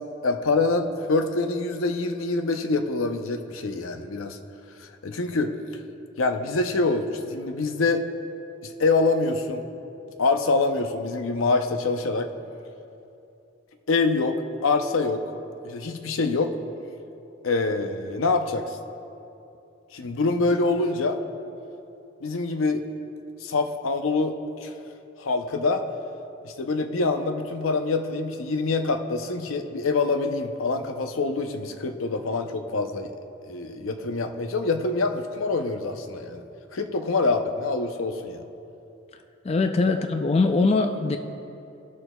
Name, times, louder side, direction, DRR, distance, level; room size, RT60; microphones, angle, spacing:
voice 1, 0.2-4.4 4.8-5.5 6.2-8.1 8.6-9.7 10.2-12.3 13.9-14.4 14.6-15.2 15.6-16.5 17.4-18.8 19.9-21.2 22.2-22.8 23.4-24.7 25.2-25.8 26.4-33.1 33.5-36.4 36.7-38.4, left 3 dB, 85° left, 6 dB, 0.6 m, -25 dB
voice 2, 39.4-41.2, left 3 dB, 30° left, 6 dB, 0.3 m, -22 dB
19.0 x 6.4 x 2.3 m, 2.8 s
head